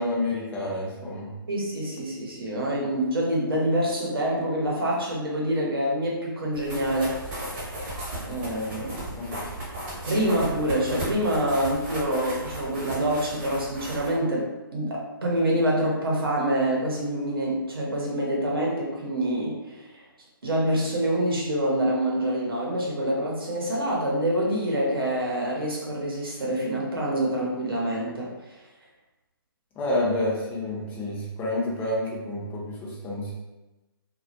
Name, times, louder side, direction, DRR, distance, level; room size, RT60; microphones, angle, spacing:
voice 1, 0.0-1.3 9.2-9.5 29.8-33.3, left 1 dB, 15° left, -5 dB, 0.5 m, -29 dB
voice 2, 1.5-7.2 8.2-9.1 10.0-20.0 20.4-28.6, right 1 dB, 75° right, -3 dB, 0.8 m, -26 dB
sound 1, 6.5-14.1, right 1 dB, 30° right, 0.9 m, -35 dB
2.2 x 2.0 x 2.7 m, 1.1 s
figure-of-eight pair, 140°, 12 cm